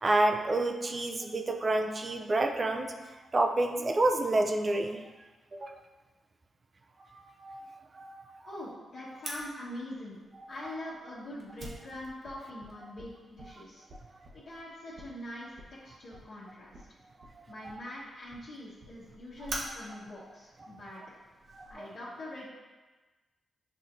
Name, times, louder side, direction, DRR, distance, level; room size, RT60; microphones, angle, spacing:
voice 1, 0.0-2.9 3.3-5.0 5.5-5.7 7.1-7.7 8.0-8.3 21.8-21.9, right 2 dB, 40° right, 4 dB, 0.5 m, -28 dB
voice 2, 8.4-10.2 10.5-13.8 14.3-15.5 15.8-16.8 17.5-21.0 21.7-22.5, left 1 dB, 70° left, -12 dB, 1.2 m, -43 dB
Fire, 9.2-21.7, right 1 dB, 60° right, 1.0 m, -47 dB
7.4 x 2.7 x 2.6 m, 1.2 s
supercardioid pair, 50°, 0 cm